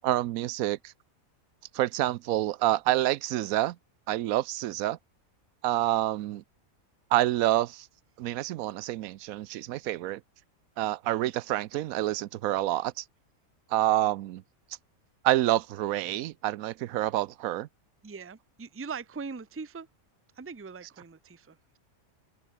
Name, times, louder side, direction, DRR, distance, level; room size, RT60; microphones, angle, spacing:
voice 1, 0.0-0.9 1.7-3.8 4.1-5.0 5.6-6.4 7.1-7.9 8.2-10.2 10.8-13.0 13.7-14.4 15.2-17.7, right 14 dB, 90° right, 1.0 m, -27 dB
voice 2, 18.0-19.9 20.4-21.8, right 5 dB, 15° right, 0.5 m, -41 dB
open air
omnidirectional pair, 1.4 m